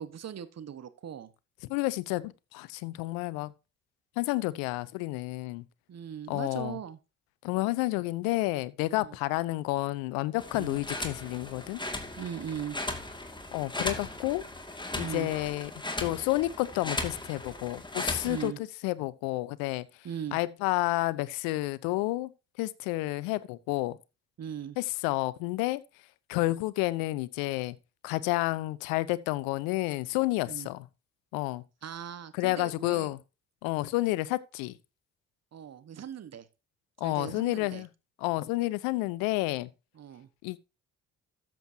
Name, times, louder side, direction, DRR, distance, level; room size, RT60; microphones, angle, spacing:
voice 1, 0.0-1.3 5.9-7.0 8.9-9.2 10.5-10.8 12.2-12.8 15.0-15.3 18.2-18.6 20.0-20.4 24.4-24.8 30.5-30.7 31.8-33.1 33.8-33.9 35.5-36.5 37.0-37.8 39.9-40.3, right 9 dB, 45° right, 1.3 m, -39 dB
voice 2, 1.7-3.5 4.2-5.6 6.3-6.8 7.4-11.8 13.5-14.4 15.0-15.7 16.0-19.9 20.3-22.3 22.6-24.0 24.8-25.8 26.3-27.8 28.0-30.9 31.3-31.6 32.3-33.2 33.6-34.8 37.0-37.9 38.2-39.7 40.4-40.6, left 19 dB, 75° left, 0.7 m, -30 dB
sound 1, 10.4-18.5, left 2 dB, 10° left, 2.2 m, -37 dB
13.0 x 7.6 x 2.8 m
hypercardioid pair, 50°, 37 cm